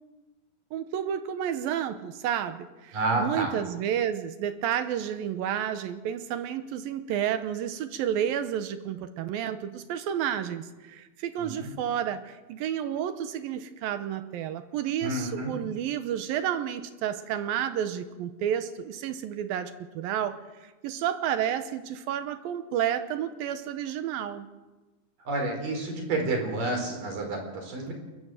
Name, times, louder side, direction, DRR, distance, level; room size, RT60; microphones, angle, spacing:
voice 1, 0.7-24.5, right 9 dB, 75° right, 10 dB, 2.7 m, -31 dB
voice 2, 2.9-3.5 11.4-11.7 15.0-15.6 25.3-27.9, right 2 dB, 60° right, 3 dB, 5.9 m, -29 dB
28.5 x 12.5 x 7.8 m, 1.2 s
omnidirectional pair, 4.4 m